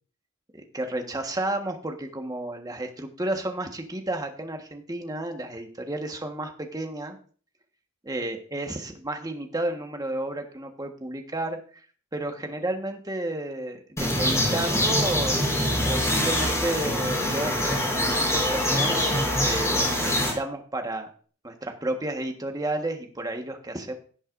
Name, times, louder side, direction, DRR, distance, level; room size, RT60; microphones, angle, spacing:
voice 1, 0.5-7.2 8.0-11.6 12.1-18.0 18.3-21.1 21.4-23.9, right 1 dB, 20° right, 4 dB, 1.4 m, -32 dB
sound 1, 14.0-20.3, left 1 dB, 15° left, 4.5 m, -24 dB
17.0 x 7.7 x 2.6 m, 0.43 s
head